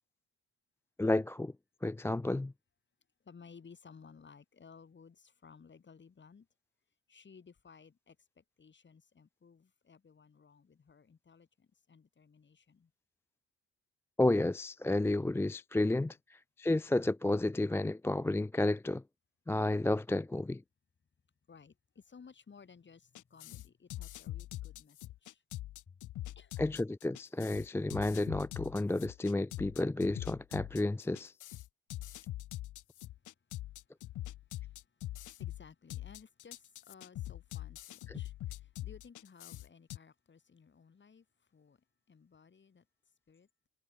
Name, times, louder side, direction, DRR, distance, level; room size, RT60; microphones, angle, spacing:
voice 1, 1.0-1.5 1.8-2.5 14.2-16.2 16.6-19.0 19.5-20.6 26.6-31.3 38.1-38.2, left 2 dB, 10° left, 0.5 m, -31 dB
voice 2, 3.2-6.5 7.1-12.9 16.0-16.1 21.5-25.4 25.9-26.0 26.3-26.6 34.5-34.8 35.2-41.2 41.5-41.8 42.1-42.8 43.3-43.5, left 5 dB, 40° left, 4.8 m, -58 dB
sound 1, 23.1-40.0, left 15 dB, 80° left, 1.4 m, -43 dB
cardioid pair, 90°, 30 cm